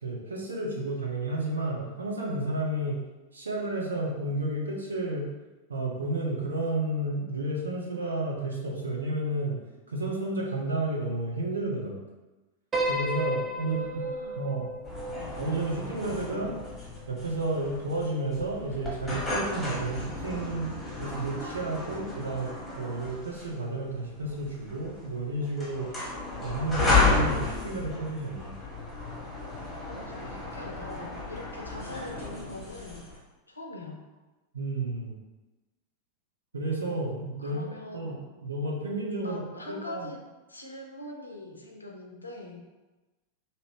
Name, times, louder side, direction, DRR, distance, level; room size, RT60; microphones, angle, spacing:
voice 1, 0.0-3.0 3.3-5.2 5.7-9.6 9.9-12.0 12.9-14.0 14.4-14.7 15.4-16.6 17.1-20.7 21.0-25.9 26.4-28.5 34.5-35.2 36.5-37.7 37.9-39.4 39.7-40.1, right 2 dB, 75° right, -2 dB, 0.7 m, -31 dB
Piano, 12.7-17.1, right 1 dB, 20° right, 0.6 m, -34 dB
voice 2, 13.6-14.5 29.8-33.0 33.5-34.0 37.4-38.4 39.2-40.2 40.5-42.6, left 2 dB, 80° left, 1 dB, 0.5 m, -42 dB
sound 1, 14.8-33.2, left 3 dB, 10° left, 1.1 m, -33 dB
2.7 x 2.5 x 3.3 m, 1.1 s
figure-of-eight pair, 90°, 0 cm